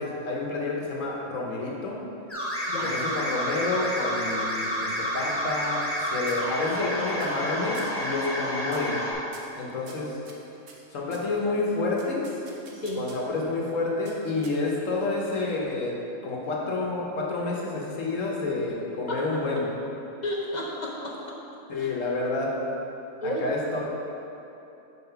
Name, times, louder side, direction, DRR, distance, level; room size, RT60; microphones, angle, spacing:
voice 1, 0.0-2.1 2.8-9.0 9.5-10.2 10.9-12.4 13.0-19.7 21.7-22.6 23.2-23.9, left 3 dB, 80° left, -2 dB, 1.3 m, -29 dB
sound 1, 2.3-9.1, equal, 10° left, 1.1 m, -30 dB
voice 2, 2.7-3.0 12.7-13.0 19.1-19.4 20.2-21.4 21.8-21.9 23.2-23.5, left 1 dB, 45° left, -3 dB, 0.6 m, -32 dB
sound 2, 5.3-6.0 6.3-6.9 7.2-7.5 7.7-8.0 8.7-9.0 9.3-11.3 12.0-13.4 14.1-14.9, right 4 dB, 70° right, 1.1 m, -50 dB
5.5 x 4.3 x 5.7 m, 3.0 s
omnidirectional pair, 1.3 m